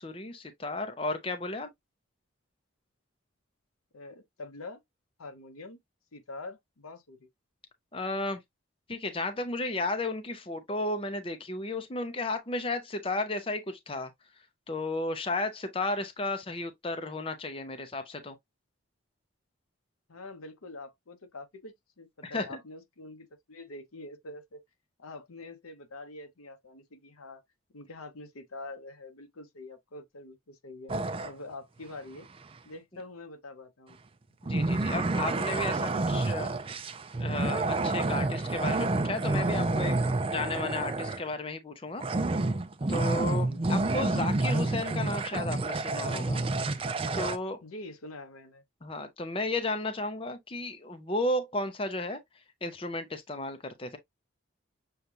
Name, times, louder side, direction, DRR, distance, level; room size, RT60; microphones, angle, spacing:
voice 1, 0.0-1.7 7.9-8.4 8.9-14.1 14.7-18.4 22.2-22.6 34.5-36.8 37.2-40.0 40.3-42.0 42.9-46.4 47.1-47.6 48.8-52.2 52.6-54.0, left 2 dB, 25° left, 0.6 m, -33 dB
voice 2, 3.9-4.8 5.2-5.8 6.1-7.3 20.1-24.6 25.0-27.4 27.7-30.9 31.2-32.3 32.6-34.0 43.4-43.6 47.6-48.6, left 2 dB, 90° left, 0.9 m, -45 dB
sound 1, 30.9-31.3 34.5-41.3 42.0-47.4, right 2 dB, 25° right, 0.4 m, -29 dB
6.7 x 2.3 x 2.8 m
head